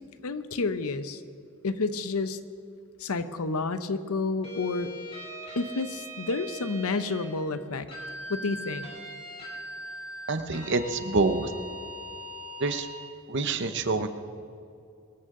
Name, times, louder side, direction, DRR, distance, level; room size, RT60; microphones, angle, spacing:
voice 1, 0.2-1.2 1.6-2.4 3.0-4.9 5.6-7.9 8.3-8.9, left 3 dB, 80° left, 12 dB, 0.7 m, -30 dB
sound 1, 4.4-7.3 7.9-13.0, equal, 25° left, 3.1 m, -41 dB
voice 2, 10.3-11.5 12.6-12.9 13.3-14.1, right 3 dB, 50° right, 10 dB, 0.8 m, -26 dB
22.5 x 13.5 x 3.8 m, 2.5 s
head